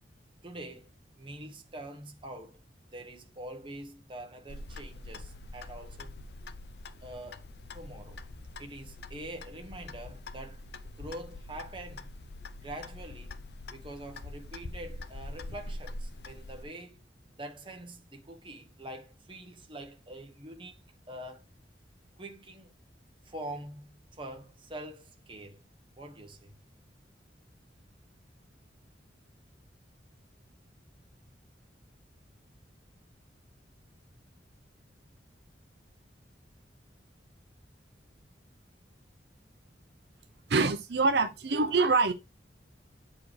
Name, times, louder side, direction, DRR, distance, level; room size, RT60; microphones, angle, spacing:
voice 1, 0.4-0.9 1.2-2.6 2.9-6.1 7.0-7.5 7.7-8.2 8.6-10.6 11.0-12.1 12.6-13.3 13.7-17.0 17.4-21.4 22.2-22.7 23.2-25.6 26.0-26.5, right 1 dB, 30° right, 1.2 m, -44 dB
Clock, 4.5-16.6, left 2 dB, 65° left, 0.7 m, -44 dB
voice 2, 40.5-42.1, right 3 dB, 65° right, 0.7 m, -25 dB
8.6 x 4.8 x 3.2 m
head